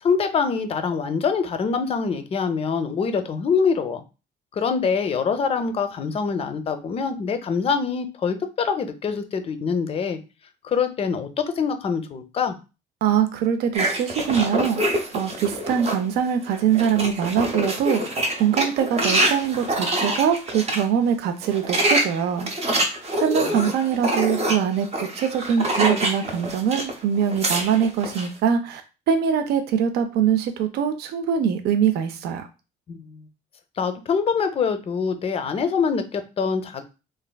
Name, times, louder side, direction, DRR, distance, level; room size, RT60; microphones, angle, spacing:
voice 1, 0.0-4.0 4.5-10.2 10.6-12.6 23.4-23.7 32.9-33.2 33.8-36.8, left 5 dB, 35° left, 9 dB, 0.4 m, -24 dB
voice 2, 13.0-22.5 23.2-28.8 29.1-32.5, right 8 dB, 75° right, 8 dB, 0.4 m, -23 dB
sound 1, 13.7-16.1 16.5-20.8 21.4-26.9 27.2-28.3, right 1 dB, 40° right, 0.7 m, -25 dB
3.2 x 2.4 x 2.2 m, 0.30 s
cardioid pair, 110°, 17 cm